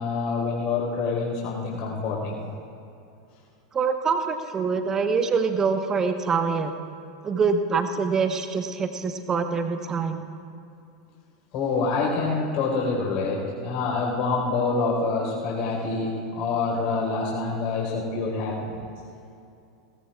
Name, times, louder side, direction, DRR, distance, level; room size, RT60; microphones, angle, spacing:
voice 1, 0.0-2.4 11.5-18.9, left 4 dB, 45° left, -2 dB, 4.3 m, -26 dB
voice 2, 3.7-6.7 7.2-10.3, right 5 dB, 25° right, 7 dB, 1.1 m, -25 dB
21.0 x 18.5 x 2.4 m, 2.5 s
figure-of-eight pair, 85°, 2 cm